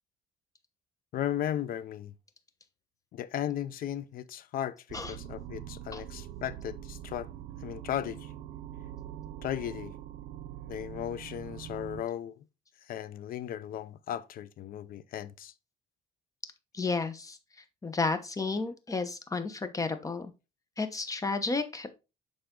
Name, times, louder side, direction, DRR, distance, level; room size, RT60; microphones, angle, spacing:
voice 1, 1.1-2.1 3.1-7.3 7.6-8.3 9.4-9.9 10.7-12.4 12.9-15.5, left 11 dB, 60° left, 0.6 m, -36 dB
sound 1, 4.9-12.0, right 11 dB, 80° right, 0.6 m, -43 dB
voice 2, 16.7-17.4 17.8-20.3 20.8-21.9, left 3 dB, 20° left, 1.0 m, -32 dB
6.9 x 5.1 x 3.8 m
cardioid pair, 110°, 17 cm